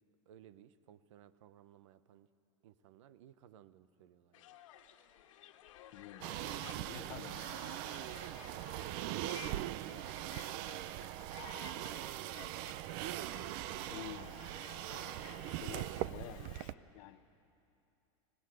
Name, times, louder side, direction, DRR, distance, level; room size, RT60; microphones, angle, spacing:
voice 1, 0.3-2.3 2.6-4.5 8.5-11.1 11.6-12.8, right 11 dB, 70° right, 15 dB, 0.9 m, -58 dB
sound 1, 4.3-16.7, left 10 dB, 80° left, 1.5 m, -55 dB
voice 2, 5.9-6.4 6.7-7.5 7.8-8.1 13.9-14.4 15.4-17.2, left 14 dB, 45° left, 11 dB, 1.0 m, -50 dB
sound 2, 6.2-16.7, right 14 dB, 45° right, 0.5 m, -41 dB
25.5 x 19.5 x 7.9 m, 2.6 s
supercardioid pair, 165°, 16 cm